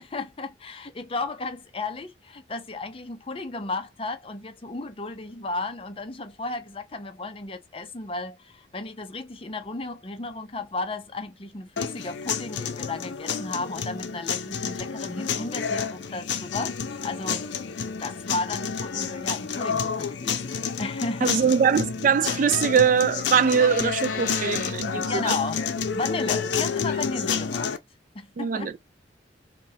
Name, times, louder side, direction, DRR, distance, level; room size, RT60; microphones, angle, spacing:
voice 1, 0.0-21.4 24.9-25.6 25.9-27.8 28.1-28.8, left 3 dB, 30° left, 0.5 m, -34 dB
sound 1, 11.8-27.8, left 6 dB, 75° left, 0.5 m, -30 dB
voice 2, 21.2-25.3 28.4-28.8, right 7 dB, 45° right, 0.3 m, -22 dB
Door, 22.2-24.8 26.6-26.7 26.9-27.3, left 4 dB, 45° left, 1.4 m, -38 dB
5.1 x 2.2 x 2.7 m
head